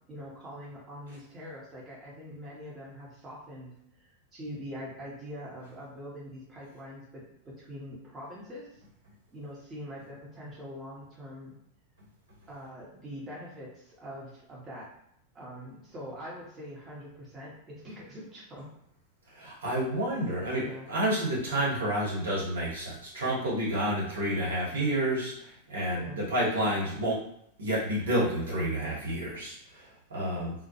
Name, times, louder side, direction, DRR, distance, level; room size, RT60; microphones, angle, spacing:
voice 1, 0.1-8.8 9.3-11.5 12.5-14.9 15.3-18.7 20.5-20.9 25.9-26.2 30.2-30.5, equal, 20° right, -5 dB, 0.8 m, -43 dB
voice 2, 19.3-27.2 27.6-30.5, right 1 dB, 70° right, -6 dB, 0.9 m, -30 dB
2.1 x 2.0 x 2.8 m, 0.72 s
figure-of-eight pair, 90°, 0 cm